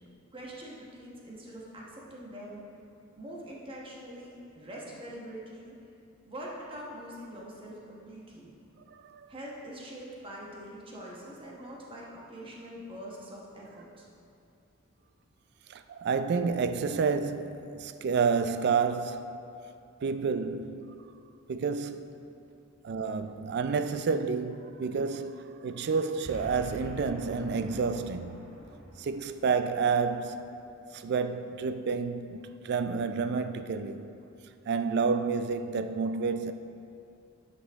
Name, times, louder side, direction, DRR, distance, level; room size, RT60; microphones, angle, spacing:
voice 1, 0.3-2.6 3.2-5.7 6.3-8.5 9.3-14.1 22.4-22.5, equal, 25° right, 1.2 m, -44 dB
voice 2, 8.9-9.3 15.7-19.4 20.0-21.0 21.5-22.2 22.8-28.4 29.0-30.5 30.9-34.1 34.7-36.5, right 5 dB, 55° right, 0.3 m, -30 dB
Boom, 26.2-30.6, equal, 75° right, 1.2 m, -46 dB
9.7 x 5.4 x 3.5 m
head